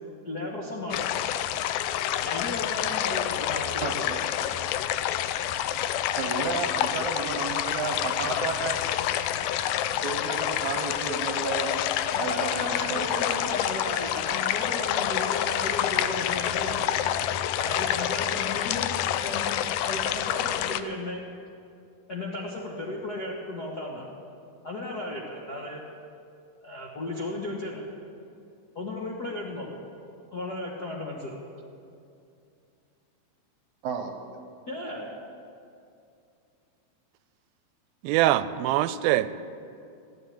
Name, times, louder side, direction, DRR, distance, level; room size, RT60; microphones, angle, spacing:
voice 1, 0.2-1.1 2.2-4.1 12.1-17.1 17.6-18.9 19.2-21.2 22.1-24.1 24.6-25.8 26.6-27.9 28.7-29.7 30.3-31.4 34.7-35.1, left 1 dB, 55° left, -4 dB, 1.1 m, -35 dB
sound 1, 0.9-20.8, left 11 dB, 80° left, 1.9 m, -28 dB
voice 2, 3.8-4.2 6.2-8.8 10.0-11.8 12.2-13.5 33.8-34.2, right 5 dB, 65° right, 5 dB, 2.0 m, -32 dB
voice 3, 38.0-39.3, right 14 dB, 85° right, 14 dB, 2.4 m, -23 dB
16.0 x 9.7 x 8.5 m, 2.5 s
omnidirectional pair, 4.2 m